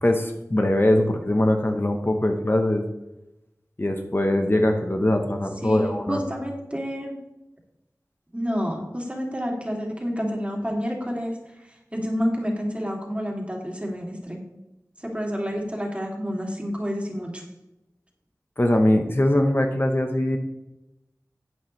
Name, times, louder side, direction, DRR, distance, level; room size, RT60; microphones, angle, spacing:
voice 1, 0.0-2.8 3.8-6.2 18.6-20.4, left 1 dB, 35° left, 3 dB, 0.9 m, -22 dB
voice 2, 5.6-7.2 8.3-14.4 15.0-17.4, equal, 20° right, 0 dB, 2.5 m, -29 dB
11.0 x 8.7 x 3.2 m, 0.92 s
wide cardioid pair, 50°, 6 cm